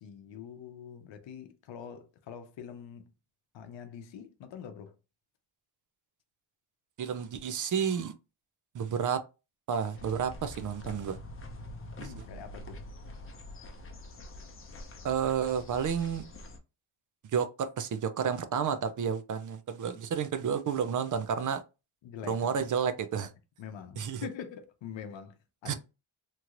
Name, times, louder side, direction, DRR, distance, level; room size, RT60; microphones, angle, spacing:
voice 1, 0.0-3.1 3.5-5.0 12.0-12.9 22.0-22.5 23.6-25.7, left 8 dB, 60° left, 0.7 m, -44 dB
voice 2, 7.0-8.1 8.7-9.2 9.7-11.2 12.0-12.1 15.0-16.2 17.3-21.6 22.3-23.3 24.0-24.3 25.7-25.8, right 7 dB, 40° right, 0.4 m, -31 dB
sound 1, 9.9-16.6, left 1 dB, 25° left, 0.6 m, -45 dB
3.0 x 2.9 x 2.5 m
cardioid pair, 100°, 50 cm